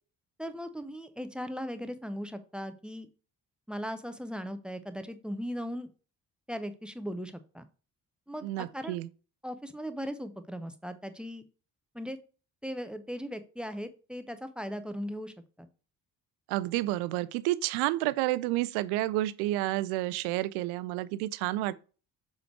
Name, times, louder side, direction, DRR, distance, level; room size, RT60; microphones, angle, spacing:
voice 1, 0.4-3.1 3.7-5.9 6.5-7.7 8.3-9.0 9.4-11.4 11.9-12.2 12.6-15.7, equal, ahead, 0.4 m, -38 dB
voice 2, 8.4-9.1 16.5-21.7, right 16 dB, 55° right, 0.5 m, -30 dB
7.0 x 3.1 x 4.4 m
figure-of-eight pair, 45°, 50 cm